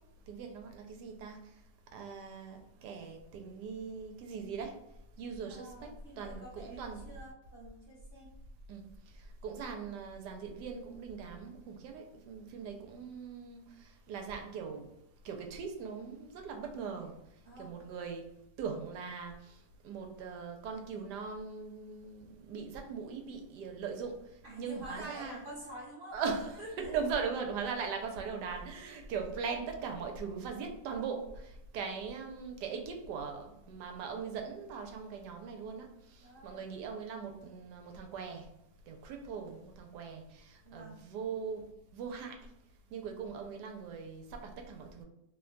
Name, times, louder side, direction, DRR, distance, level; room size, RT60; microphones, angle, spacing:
voice 1, 0.3-1.4 1.9-4.8 5.2-7.0 8.7-8.8 9.4-14.9 15.2-17.1 17.6-18.3 18.6-25.4 26.1-38.5 38.9-41.6 41.9-42.5 42.9-45.0, right 5 dB, 80° right, 3 dB, 1.2 m, -40 dB
voice 2, 5.5-8.3 17.4-17.8 24.4-26.2 26.6-26.9 36.2-36.6 40.6-41.0, right 1 dB, 50° right, -7 dB, 0.8 m, -48 dB
2.8 x 2.2 x 3.7 m, 0.81 s
omnidirectional pair, 1.8 m